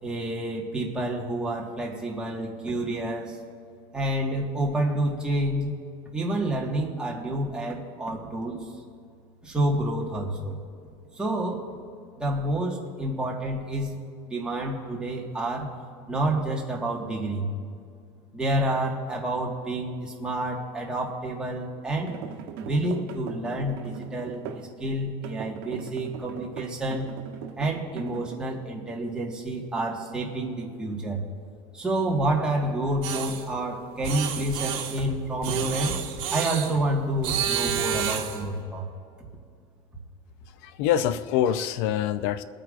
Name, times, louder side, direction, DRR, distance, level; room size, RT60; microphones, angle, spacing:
voice 1, 0.0-3.4 3.9-5.7 6.1-8.6 9.4-10.6 11.2-11.7 12.2-13.9 14.3-15.7 16.1-17.5 18.3-22.1 22.6-27.1 27.6-31.2 31.7-36.0 36.3-38.9, right 1 dB, 5° right, -3 dB, 1.6 m, -28 dB
sound 1, 21.9-24.7 25.2-28.3, right 8 dB, 80° right, 1.0 m, -40 dB
sound 2, 33.0-33.4 34.0-35.0 35.4-36.7 37.2-38.4, right 9 dB, 50° right, 1.5 m, -30 dB
voice 2, 40.6-42.4, left 10 dB, 80° left, 13 dB, 0.5 m, -25 dB
22.5 x 9.1 x 2.5 m, 2.3 s
cardioid pair, 160°, 12 cm